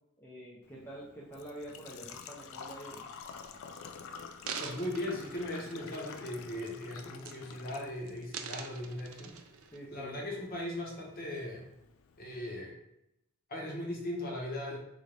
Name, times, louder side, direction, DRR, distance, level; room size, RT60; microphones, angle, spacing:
voice 1, 0.2-3.1 9.7-10.2, right 1 dB, 10° left, -6 dB, 0.5 m, -47 dB
Engine / Trickle dribble / Fill (with liquid), 0.6-12.6, left 6 dB, 70° left, 0.3 m, -50 dB
sound 1, 3.6-3.7 4.2-6.3 6.7-6.9 7.2-7.8 8.1-9.8 10.4-10.5, right 7 dB, 80° right, 0.4 m, -44 dB
voice 2, 4.6-9.3 9.9-11.7 12.2-12.7 13.5-14.8, left 1 dB, 45° left, -2 dB, 0.9 m, -38 dB
3.8 x 2.5 x 3.2 m, 0.84 s
head